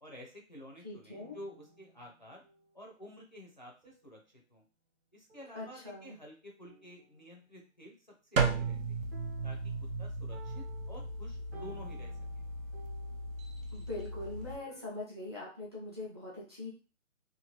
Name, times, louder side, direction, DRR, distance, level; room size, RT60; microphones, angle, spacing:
voice 1, 0.0-2.4 2.7-4.2 4.5-4.6 5.1-8.8 9.4-9.7 10.0-12.1, left 1 dB, 35° left, 0 dB, 0.4 m, -51 dB
voice 2, 0.8-1.4 5.5-6.2 13.7-16.7, left 2 dB, 20° right, -6 dB, 0.5 m, -42 dB
sound 1, 1.1-2.9 3.8-4.2 5.3-6.1 6.6-7.9 9.1-14.9, right 3 dB, 50° right, 0.9 m, -57 dB
sound 2, 8.4-14.6, right 4 dB, 75° right, 0.7 m, -36 dB
2.8 x 2.1 x 2.9 m, 0.33 s
hypercardioid pair, 165°, 40 cm